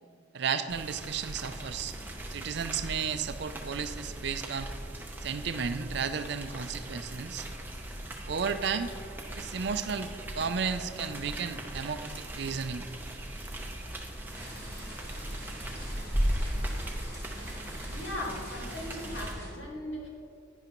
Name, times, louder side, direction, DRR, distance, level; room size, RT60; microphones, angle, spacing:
voice 1, 0.3-2.0 2.3-4.7 5.2-7.5 8.3-8.9 9.3-12.9 13.9-14.0, right 6 dB, 60° right, 10 dB, 0.4 m, -33 dB
sound 1, 0.7-19.3, right 1 dB, 10° right, 0.7 m, -41 dB
sound 2, 14.3-19.5, equal, 15° left, 1.8 m, -34 dB
voice 2, 17.9-20.1, left 1 dB, 70° left, -2 dB, 1.8 m, -38 dB
11.0 x 9.9 x 3.0 m, 2.4 s
head